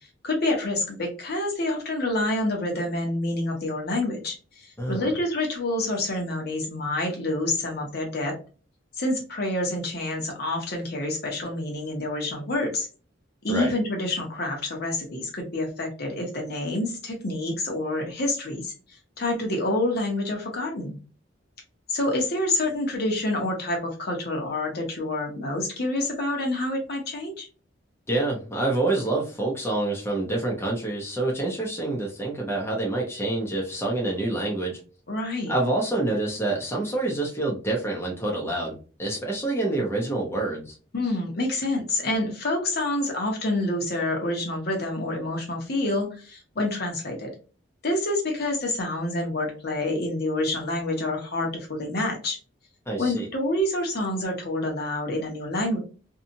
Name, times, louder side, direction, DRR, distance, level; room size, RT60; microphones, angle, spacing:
voice 1, 0.2-8.3 9.0-12.9 13.4-18.7 19.2-21.0 21.9-27.5 35.1-35.5 40.9-47.3 47.8-52.4 53.0-55.8, left 1 dB, 55° left, 1 dB, 1.0 m, -27 dB
voice 2, 4.8-5.1 13.5-13.8 28.1-34.8 35.5-40.7 52.9-53.3, right 2 dB, 15° left, -2 dB, 0.7 m, -27 dB
2.7 x 2.4 x 2.6 m, 0.36 s
head